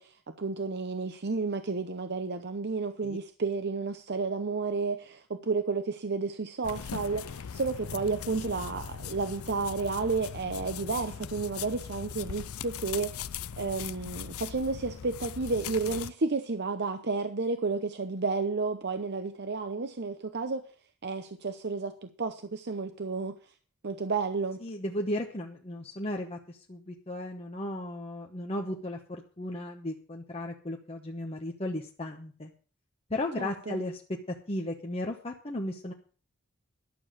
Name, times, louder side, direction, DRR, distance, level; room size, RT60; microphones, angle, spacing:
voice 1, 0.0-20.7 21.0-23.4 23.8-24.6 33.4-33.8, right 4 dB, 50° right, 0.8 m, -32 dB
sound 1, 6.6-16.1, left 8 dB, 80° left, 0.5 m, -40 dB
voice 2, 24.6-32.5 33.1-35.9, left 1 dB, 30° left, 1.1 m, -35 dB
11.5 x 7.0 x 7.3 m
head